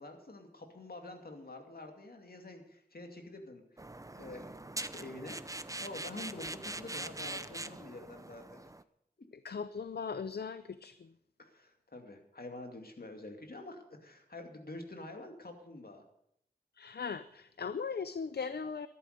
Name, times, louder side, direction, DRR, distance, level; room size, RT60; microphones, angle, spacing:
voice 1, 0.0-3.6 4.0-5.4 5.8-8.7 11.4-16.0, left 2 dB, 70° left, 4 dB, 2.4 m, -47 dB
sound 1, 3.8-8.8, right 2 dB, 20° right, 0.7 m, -43 dB
voice 2, 9.4-10.9 16.8-18.9, left 5 dB, 85° left, 13 dB, 0.5 m, -38 dB
13.0 x 11.0 x 6.7 m, 0.73 s
wide cardioid pair, 60°, 16 cm